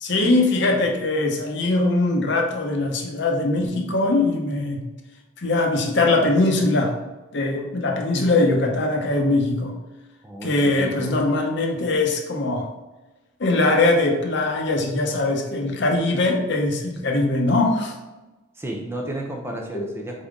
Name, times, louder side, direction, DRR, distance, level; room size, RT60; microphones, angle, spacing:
voice 1, 0.0-4.8 5.4-7.0 7.3-9.7 10.4-12.7 13.4-17.9 19.7-19.9, left 2 dB, 55° left, 2 dB, 0.7 m, -21 dB
voice 2, 10.2-11.2 18.5-20.3, right 1 dB, 10° right, 1 dB, 0.4 m, -32 dB
4.1 x 3.7 x 3.5 m, 1.1 s
head